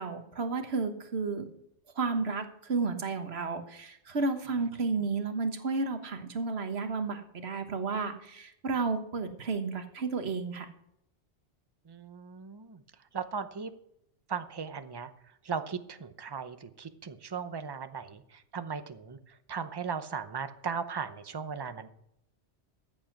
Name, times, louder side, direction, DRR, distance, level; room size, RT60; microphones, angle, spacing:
voice 1, 0.0-1.4 1.9-10.7, right 4 dB, 60° right, 7 dB, 1.5 m, -32 dB
voice 2, 11.9-12.8 13.1-13.7 14.3-15.1 15.4-21.9, right 6 dB, 25° right, 10 dB, 0.6 m, -37 dB
13.5 x 7.8 x 6.0 m, 0.76 s
omnidirectional pair, 1.2 m